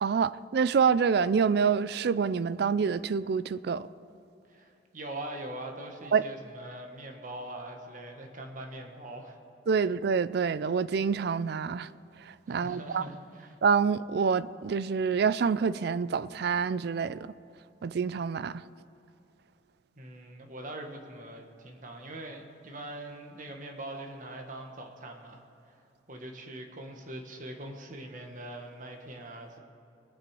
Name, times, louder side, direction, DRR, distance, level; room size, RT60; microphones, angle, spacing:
voice 1, 0.0-3.9 6.1-6.2 9.7-11.9 12.2-13.1 13.6-17.3 17.8-18.6, right 6 dB, 60° right, 17 dB, 0.4 m, -27 dB
voice 2, 4.5-9.4 12.5-13.6 20.0-25.4 26.1-29.6, right 1 dB, 45° right, 3 dB, 1.4 m, -42 dB
20.5 x 7.6 x 4.7 m, 2.8 s
head